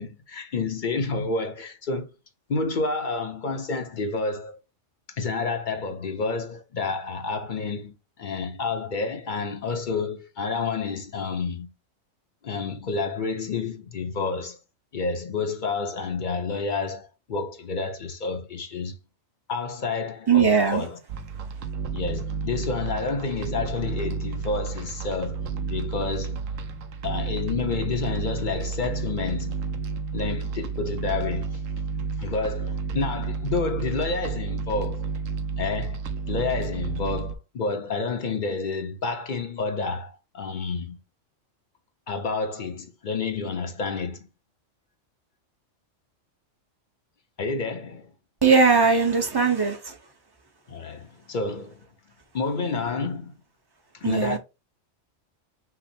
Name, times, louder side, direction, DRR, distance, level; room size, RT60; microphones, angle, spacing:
voice 1, 0.0-2.1 2.5-4.6 5.1-11.7 12.4-14.6 14.9-19.0 19.5-21.0 21.9-26.4 27.0-29.7 30.1-31.6 32.2-35.1 35.6-36.0 36.3-41.0 42.1-44.3 47.4-48.1 50.7-51.8 52.3-53.3 53.9-54.4, left 4 dB, 50° left, 0.7 m, -29 dB
voice 2, 20.3-20.8 48.4-49.8 54.0-54.4, right 5 dB, 25° right, 0.7 m, -19 dB
sound 1, 21.1-37.4, right 4 dB, 80° right, 1.0 m, -31 dB
5.9 x 2.0 x 4.3 m
omnidirectional pair, 1.3 m